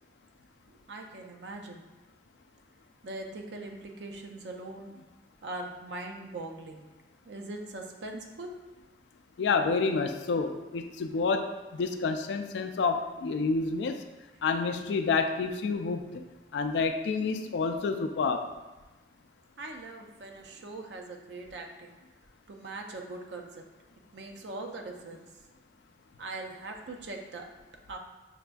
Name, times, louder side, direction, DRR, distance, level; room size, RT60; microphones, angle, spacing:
voice 1, 0.7-1.8 3.0-4.9 5.4-6.9 7.3-8.6 19.6-22.0 22.5-23.6 24.1-25.3 26.2-27.5 27.9-28.0, right 2 dB, 80° right, 2 dB, 0.5 m, -41 dB
voice 2, 9.4-14.0 14.4-16.2 16.5-18.5, left 4 dB, 80° left, 7 dB, 0.3 m, -29 dB
6.4 x 2.5 x 2.3 m, 1.2 s
head